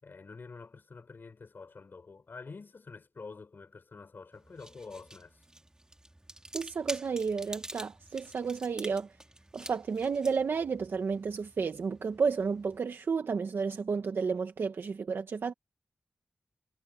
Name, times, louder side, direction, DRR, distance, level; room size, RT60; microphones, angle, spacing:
voice 1, 0.0-5.4, left 4 dB, 60° left, 6.0 m, -47 dB
sound 1, 4.3-12.8, right 1 dB, 20° right, 3.2 m, -48 dB
voice 2, 6.5-9.1 9.5-15.5, right 5 dB, 80° right, 1.4 m, -31 dB
cardioid pair, 50°, 4 cm